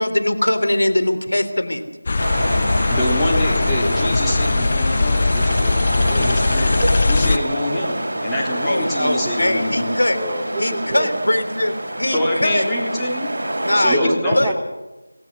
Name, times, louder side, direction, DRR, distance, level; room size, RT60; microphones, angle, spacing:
voice 1, 0.0-1.8 8.6-10.2 10.6-12.7 13.6-14.5, left 1 dB, 80° left, 10 dB, 3.6 m, -21 dB
sound 1, 2.1-7.4, left 3 dB, 35° left, 0.7 m, -20 dB
sound 2, 2.2-13.9, right 1 dB, 50° right, 6.6 m, -26 dB
voice 2, 2.9-6.8 7.1-10.0 12.1-13.3 13.7-14.5, left 1 dB, 5° left, -9 dB, 3.7 m, -25 dB
voice 3, 10.1-11.1 13.9-14.5, right 2 dB, 10° right, 1 dB, 1.5 m, -26 dB
26.0 x 18.5 x 6.4 m, 1.1 s
figure-of-eight pair, 170°, 0 cm